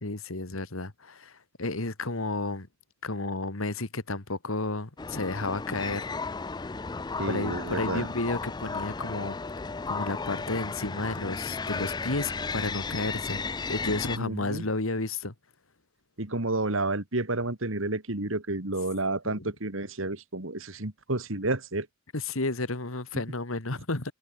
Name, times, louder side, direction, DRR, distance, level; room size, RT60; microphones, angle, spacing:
voice 1, 0.0-2.7 3.0-6.1 7.3-9.4 9.9-15.3 19.3-19.5 22.1-24.1, left 2 dB, 70° left, 2.1 m, -32 dB
sound 1, 5.0-14.2, left 4 dB, 20° left, 0.4 m, -34 dB
voice 2, 7.2-8.1 14.2-14.7 16.2-21.9 23.1-23.2, right 2 dB, 65° right, 2.4 m, -30 dB
head